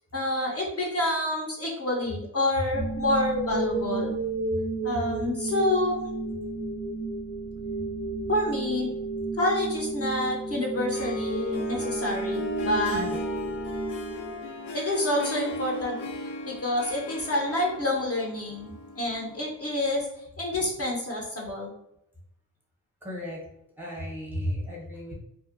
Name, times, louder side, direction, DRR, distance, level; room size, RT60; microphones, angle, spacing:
voice 1, 0.1-4.1 4.8-6.0 8.3-8.9 9.4-13.0 14.7-16.0 16.5-20.1 20.4-21.7, left 1 dB, 40° left, -2 dB, 0.5 m, -28 dB
sound 1, 2.7-14.8, right 2 dB, 50° right, 0.4 m, -32 dB
Harp, 10.7-19.6, left 1 dB, 85° left, 0.6 m, -37 dB
voice 2, 12.9-13.3 23.0-23.5 23.8-25.1, left 1 dB, 5° right, -3 dB, 0.6 m, -34 dB
2.5 x 2.1 x 2.4 m, 0.78 s
cardioid pair, 120°, 39 cm